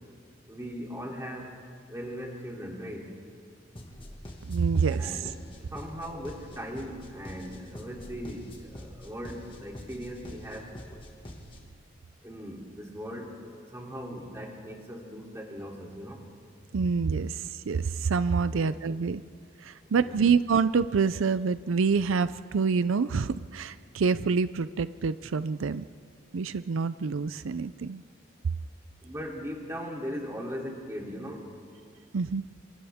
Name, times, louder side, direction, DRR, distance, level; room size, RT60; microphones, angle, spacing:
voice 1, 0.5-1.5 1.9-3.2 4.9-5.3 5.7-10.7 12.2-16.3 18.5-18.8 20.0-20.3 29.0-31.5, equal, 15° right, -2 dB, 3.0 m, -39 dB
sound 1, 3.8-11.8, left 1 dB, 25° left, 1.9 m, -46 dB
voice 2, 4.5-5.2 16.7-19.2 19.6-25.9 26.3-28.0 32.1-32.4, right 5 dB, 80° right, 14 dB, 0.5 m, -27 dB
27.5 x 26.5 x 3.6 m, 2.2 s
head